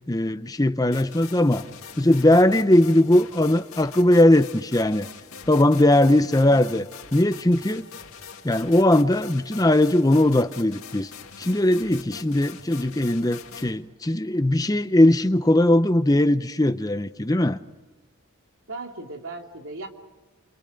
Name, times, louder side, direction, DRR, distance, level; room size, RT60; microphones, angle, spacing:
voice 1, 0.1-1.6 2.0-5.1 5.5-6.8 7.1-7.9 8.4-11.1 11.4-17.6, left 1 dB, 15° left, 0.7 m, -19 dB
sound 1, 0.9-13.7, left 6 dB, 85° left, 2.3 m, -43 dB
voice 2, 6.2-6.7 18.7-19.9, right 2 dB, 70° right, 3.0 m, -38 dB
29.5 x 28.5 x 5.2 m
head